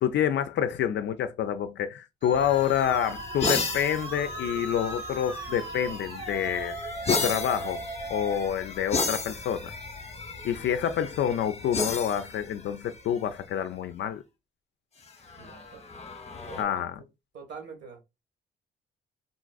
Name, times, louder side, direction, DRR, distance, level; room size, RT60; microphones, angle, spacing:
voice 1, 0.0-6.7 7.1-7.8 8.1-9.7 10.4-14.2 16.6-16.9, left 9 dB, 65° left, 0.4 m, -28 dB
Musical instrument, 2.2-8.5, right 2 dB, 25° right, 0.9 m, -38 dB
sound 1, 2.3-13.5 15.1-16.6, left 3 dB, 30° left, 0.8 m, -34 dB
voice 2, 15.4-15.8 16.5-17.1 17.3-18.0, right 5 dB, 65° right, 1.5 m, -44 dB
3.8 x 2.4 x 2.3 m
cardioid pair, 90°, 20 cm